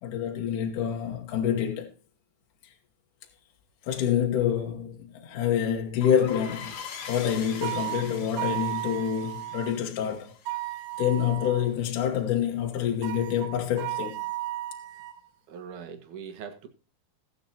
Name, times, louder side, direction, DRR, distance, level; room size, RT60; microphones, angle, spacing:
voice 1, 0.0-1.9 2.6-2.7 3.8-6.8 7.1-10.3 11.0-14.2, left 9 dB, 65° left, 2.5 m, -27 dB
sound 1, 6.0-11.3, left 7 dB, 85° left, 3.7 m, -43 dB
sound 2, 7.6-9.7 10.5-11.7 13.0-15.2, right 17 dB, 80° right, 2.5 m, -34 dB
voice 2, 15.5-16.7, right 7 dB, 60° right, 2.9 m, -41 dB
18.5 x 8.0 x 2.8 m
omnidirectional pair, 4.4 m